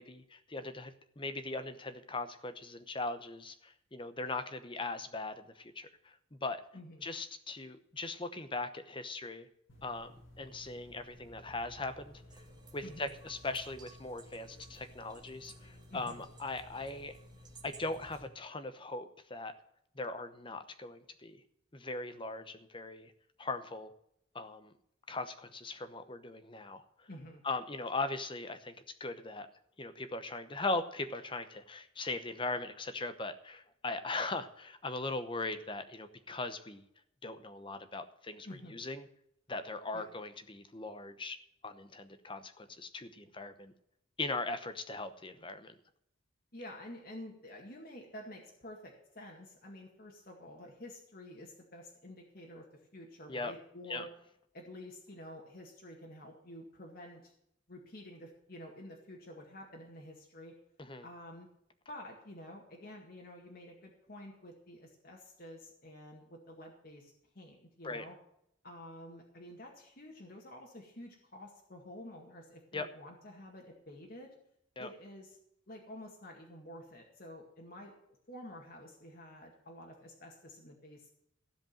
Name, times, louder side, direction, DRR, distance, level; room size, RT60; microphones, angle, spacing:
voice 1, 0.0-6.6 7.0-9.5 9.8-12.2 12.7-17.1 17.6-19.6 20.0-21.4 21.7-23.1 23.4-23.9 24.3-24.7 25.1-27.1 27.4-28.7 29.0-29.5 29.8-36.8 37.2-39.0 39.5-41.4 41.6-43.7 44.2-45.7 53.3-53.5 53.9-54.1 60.8-61.1 67.8-68.0 72.7-72.9 74.8-74.9, left 3 dB, 25° left, 10 dB, 0.9 m, -39 dB
voice 2, 6.7-7.1 12.8-13.1 15.9-16.2 27.1-27.4 38.4-38.7 39.9-40.1 46.5-54.1 54.5-57.3 57.7-60.5 61.0-61.5 61.9-68.2 68.6-74.3 74.8-75.4 75.7-77.9 78.3-81.1, left 1 dB, 45° left, 0 dB, 2.0 m, -50 dB
sound 1, 9.7-18.3, left 1 dB, 75° left, 2.4 m, -55 dB
sound 2, 12.3-18.2, right 5 dB, 20° right, 1.4 m, -59 dB
15.5 x 5.2 x 8.8 m, 0.76 s
head